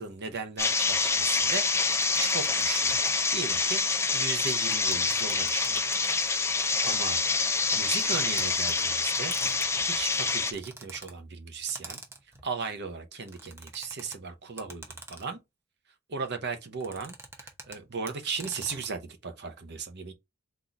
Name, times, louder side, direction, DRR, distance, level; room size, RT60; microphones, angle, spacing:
voice 1, 0.0-3.0 3.3-3.8 4.1-6.0 6.8-7.2 7.7-12.0 12.4-15.4 16.1-20.1, right 5 dB, 55° right, 0.8 m, -36 dB
sound 1, 0.6-10.5, left 4 dB, 15° left, 0.5 m, -26 dB
sound 2, 1.9-3.1 4.5-6.5 7.5-8.7 9.3-11.1 11.7-12.4 13.2-14.2 14.6-15.4 16.8-17.8 18.1-18.9, right 2 dB, 10° right, 0.9 m, -45 dB
4.0 x 2.7 x 4.5 m
head